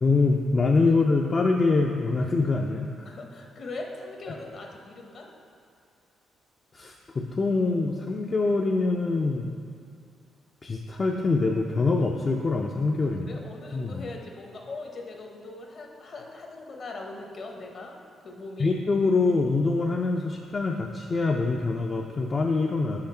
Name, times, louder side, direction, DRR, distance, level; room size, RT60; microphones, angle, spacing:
voice 1, 0.0-2.9 4.3-4.4 6.7-9.5 10.6-13.4 13.7-14.0 18.6-23.0, left 3 dB, 35° left, 1 dB, 0.4 m, -24 dB
voice 2, 3.0-5.3 13.0-17.9 18.2-18.7, left 2 dB, 50° left, 1 dB, 0.9 m, -40 dB
5.7 x 5.1 x 4.3 m, 2.4 s
cardioid pair, 90°, 0 cm